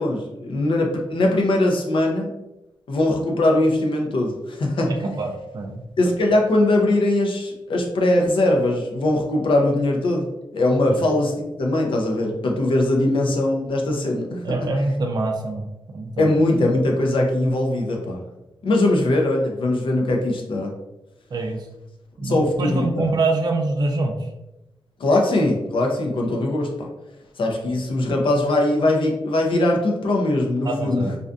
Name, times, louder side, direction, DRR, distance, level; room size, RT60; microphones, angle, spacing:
voice 1, 0.0-2.3 2.9-4.9 6.0-10.3 10.5-11.3 11.6-14.7 16.2-18.2 18.6-20.7 22.2-23.1 25.0-26.9 27.4-31.1, left 1 dB, 65° left, 1 dB, 0.5 m, -21 dB
voice 2, 5.2-5.8 10.9-11.0 14.4-15.7 15.9-16.3 21.3-21.6 22.2-24.2 30.6-31.2, right 3 dB, 45° right, 2 dB, 0.4 m, -24 dB
2.5 x 2.2 x 2.4 m, 0.94 s
wide cardioid pair, 140°, 9 cm